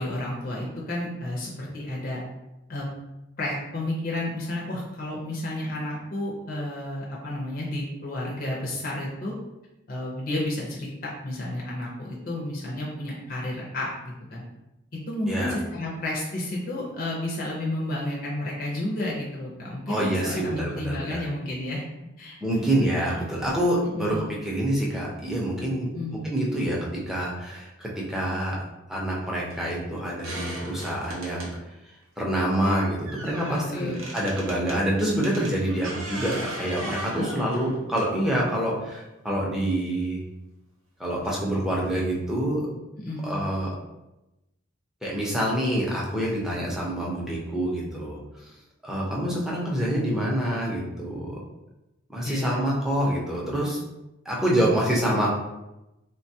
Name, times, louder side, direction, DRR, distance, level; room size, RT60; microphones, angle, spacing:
voice 1, 0.0-2.2 2.7-2.9 3.4-9.3 9.9-14.4 15.1-21.8 22.2-22.4 24.0-24.3 25.9-26.3 33.5-34.0 37.1-37.3 43.0-43.5 52.2-52.8, left 1 dB, 45° left, -4 dB, 0.5 m, -31 dB
voice 2, 19.9-21.2 22.4-25.9 26.2-28.6 28.9-31.6 32.2-40.2 41.0-42.6 43.2-43.7 45.0-48.5 48.8-51.4 52.1-53.8 54.3-55.3, right 1 dB, ahead, -5 dB, 0.5 m, -26 dB
sound 1, 29.5-29.6 30.2-31.5 32.6-34.8 35.2-38.4 39.5-39.6 41.2-41.3 41.8-41.9 42.2-42.3, right 1 dB, 90° right, 0.9 m, -38 dB
3.3 x 2.2 x 2.7 m, 0.96 s
head